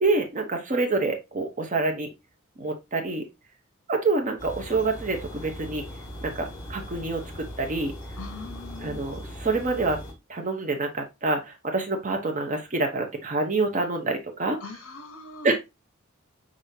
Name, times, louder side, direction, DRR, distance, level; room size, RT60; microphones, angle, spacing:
voice 1, 0.0-2.1 2.6-3.2 3.9-5.8 6.2-7.9 8.8-10.0 10.3-14.6 15.4-15.6, right 3 dB, 35° right, 4 dB, 0.7 m, -27 dB
sound 1, 4.4-10.1, equal, 10° left, 2.0 m, -39 dB
voice 2, 8.2-9.0 14.6-15.5, left 4 dB, 70° left, 7 dB, 0.6 m, -41 dB
5.0 x 3.6 x 2.7 m, 0.23 s
head